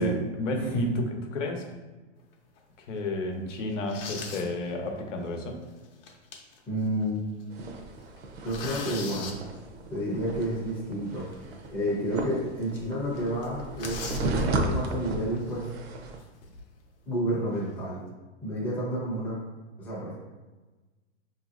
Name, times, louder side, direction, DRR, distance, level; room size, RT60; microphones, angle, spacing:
voice 1, 0.0-1.7 2.8-5.5, left 1 dB, 85° left, 3 dB, 0.8 m, -31 dB
sound 1, 2.3-2.6 3.1-3.2 3.7-4.5 4.9-5.0 5.8-6.6 7.0-7.1 7.4-7.6 8.0-9.3 11.3-11.4 11.9-12.0 12.3-12.4 12.7-12.9 13.1-14.3 15.4-15.6 16.2-16.8, left 5 dB, 50° left, 0.7 m, -40 dB
voice 2, 6.7-7.2 8.4-9.3 9.9-11.3 11.7-15.7 17.1-18.0 18.4-19.4 19.8-20.2, equal, 5° left, -7 dB, 0.5 m, -30 dB
sound 2, 7.5-16.2, right 2 dB, 60° right, 0.6 m, -34 dB
4.9 x 2.8 x 2.4 m, 1.2 s
hypercardioid pair, 155°, 36 cm